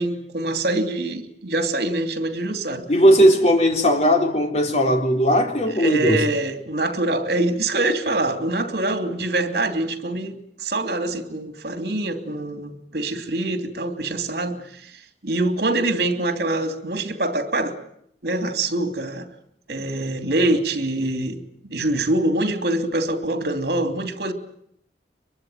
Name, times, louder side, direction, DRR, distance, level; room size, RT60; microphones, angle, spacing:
voice 1, 0.0-2.8 3.2-3.3 5.8-14.9 15.2-17.8 18.2-19.3 19.7-24.3, right 2 dB, 65° right, 3.0 m, -24 dB
voice 2, 2.9-6.2, equal, 40° left, 3.8 m, -17 dB
23.5 x 23.0 x 9.4 m
head